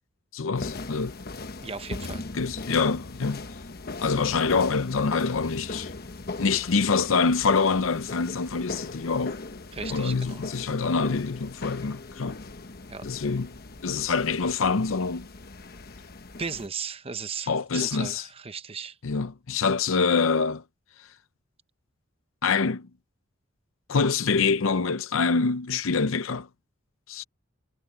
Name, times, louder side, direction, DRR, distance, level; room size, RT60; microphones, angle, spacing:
voice 1, 0.3-1.1 2.3-3.4 4.0-5.9 6.4-9.4 9.9-12.4 13.1-13.5 13.8-15.3 17.5-18.3 19.0-20.6 22.4-22.9 23.9-26.5 27.1-27.2, left 4 dB, 85° left, 0.7 m, -25 dB
sound 1, 0.5-16.7, left 3 dB, 50° left, 1.2 m, -39 dB
voice 2, 1.6-2.2 9.7-10.4 12.9-13.0 16.4-19.0, right 5 dB, 30° right, 0.9 m, -36 dB
head